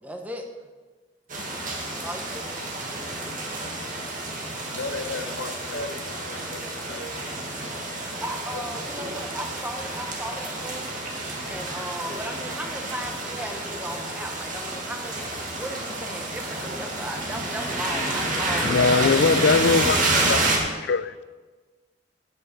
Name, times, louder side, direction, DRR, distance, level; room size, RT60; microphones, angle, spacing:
voice 1, 0.0-0.5 1.9-2.7 8.2-10.9 11.5-15.2 15.5-18.9, equal, 10° right, 3 dB, 1.1 m, -36 dB
sound 1, 1.3-20.6, right 2 dB, 45° right, 1.8 m, -29 dB
voice 2, 4.6-7.1 8.5-8.6, left 2 dB, 80° left, 5 dB, 1.2 m, -35 dB
voice 3, 18.6-20.0 20.3-20.4 20.9-21.2, left 4 dB, 60° left, 15 dB, 0.4 m, -20 dB
9.2 x 7.9 x 6.5 m, 1.3 s
head